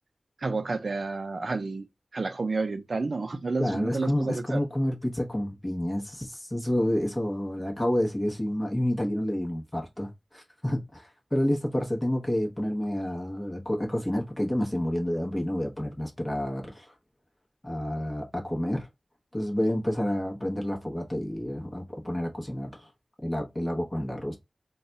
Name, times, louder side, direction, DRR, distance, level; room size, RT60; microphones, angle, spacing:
voice 1, 0.4-1.8 2.1-4.6, right 3 dB, 60° right, 0.5 m, -30 dB
voice 2, 3.6-16.9 17.6-18.9 19.3-22.9 23.2-24.4, left 1 dB, 20° left, 1.0 m, -29 dB
3.9 x 2.3 x 4.0 m
wide cardioid pair, 90°, 0 cm